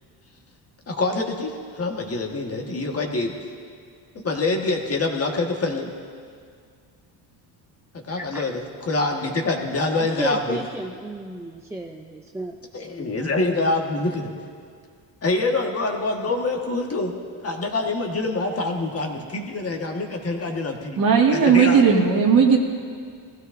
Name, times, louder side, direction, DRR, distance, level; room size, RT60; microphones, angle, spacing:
voice 1, 0.9-3.3 4.1-5.9 7.9-8.6 8.9-10.6 12.7-14.3 15.2-17.1 17.4-21.0 21.3-21.8, left 2 dB, 35° left, 1 dB, 1.5 m, -25 dB
voice 2, 8.2-8.6 9.9-12.9 13.2-13.3, right 1 dB, 5° right, 2 dB, 0.5 m, -33 dB
voice 3, 21.0-22.6, right 6 dB, 50° right, 0 dB, 2.0 m, -16 dB
18.5 x 15.5 x 2.6 m, 2.1 s
cardioid pair, 110°, 43 cm